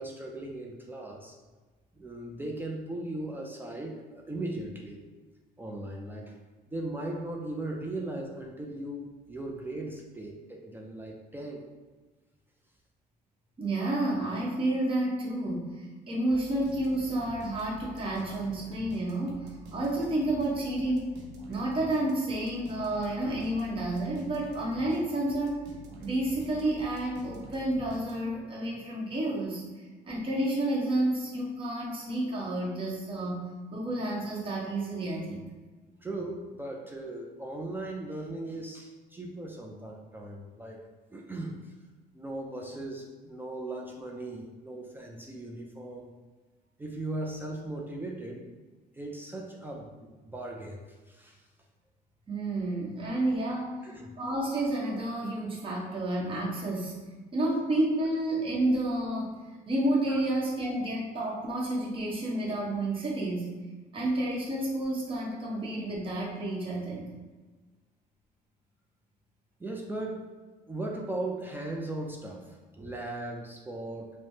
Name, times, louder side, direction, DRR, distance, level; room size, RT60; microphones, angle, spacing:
voice 1, 0.0-1.3 2.0-5.0 5.6-6.3 6.7-11.6 36.0-40.8 41.1-41.7 42.1-46.1 46.8-48.4 48.9-49.9 50.2-51.4 53.8-54.1 60.1-60.2 69.6-70.3 70.7-74.1, right 2 dB, 10° right, -1 dB, 0.3 m, -38 dB
voice 2, 13.6-21.1 21.5-25.6 26.0-29.6 30.0-33.4 33.7-35.5 52.3-53.8 54.2-57.0 57.3-59.3 59.7-63.5 63.9-67.0, right 1 dB, 30° right, -4 dB, 0.9 m, -30 dB
sound 1, 16.3-28.5, equal, 85° right, 0.6 m, -48 dB
3.2 x 2.0 x 2.7 m, 1.3 s
cardioid pair, 110°, 17 cm